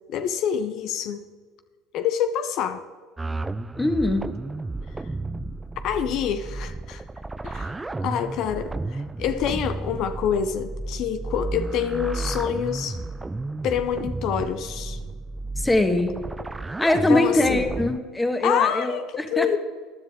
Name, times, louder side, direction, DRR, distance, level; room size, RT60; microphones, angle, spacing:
voice 1, 0.1-1.3 1.9-2.8 5.8-7.0 7.4-7.7 8.0-13.0 13.6-15.0 17.1-17.6 18.4-19.6, left 8 dB, 60° left, 9 dB, 0.6 m, -26 dB
sound 1, 3.2-18.0, right 2 dB, 15° right, 0.4 m, -32 dB
voice 2, 3.8-4.3 15.6-16.1 16.7-19.6, left 2 dB, 10° left, 7 dB, 1.4 m, -22 dB
14.5 x 10.5 x 3.7 m, 1.5 s
supercardioid pair, 90°, 0 cm